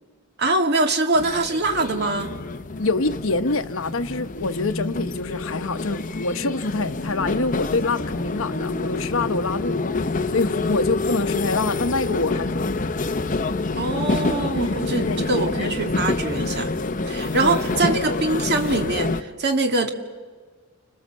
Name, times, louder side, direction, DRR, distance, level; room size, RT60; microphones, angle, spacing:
voice 1, 0.4-2.3 13.8-16.7 17.1-19.9, right 2 dB, 50° right, 2.1 m, -23 dB
sound 1, 1.1-19.2, left 3 dB, 35° left, 0.8 m, -27 dB
voice 2, 2.8-9.8 10.3-12.8 14.5-15.7 17.4-17.6 17.8-18.0, left 3 dB, 65° left, 1.0 m, -26 dB
29.0 x 26.5 x 7.6 m
head